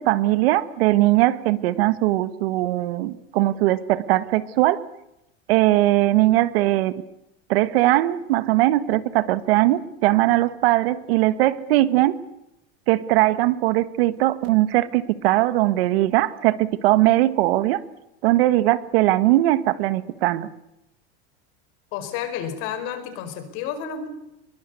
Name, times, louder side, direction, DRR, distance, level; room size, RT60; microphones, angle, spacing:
voice 1, 0.0-4.8 5.5-6.9 7.5-12.2 12.9-17.8 18.2-20.5, right 16 dB, 70° right, 15 dB, 1.6 m, -20 dB
voice 2, 21.9-24.1, left 8 dB, 45° left, 9 dB, 4.8 m, -31 dB
22.5 x 22.5 x 8.2 m, 0.85 s
supercardioid pair, 180°, 31 cm